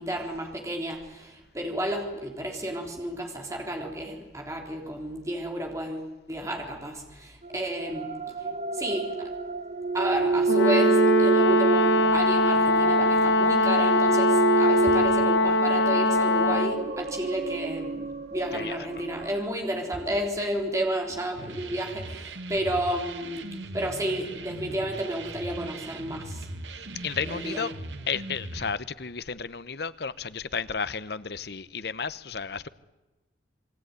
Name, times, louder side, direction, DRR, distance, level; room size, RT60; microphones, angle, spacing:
voice 1, 0.0-8.1 8.7-9.3 9.9-23.5 23.7-26.5 27.3-27.6, right 1 dB, 15° right, 3.7 m, -31 dB
sound 1, 7.4-19.3, right 3 dB, 35° right, 1.1 m, -28 dB
Brass instrument, 10.5-16.9, left 1 dB, 85° left, 1.7 m, -22 dB
sound 2, 21.4-28.7, right 2 dB, 80° right, 1.8 m, -40 dB
voice 2, 27.0-27.7 28.1-32.7, left 5 dB, 60° left, 0.8 m, -32 dB
27.5 x 22.0 x 9.5 m
head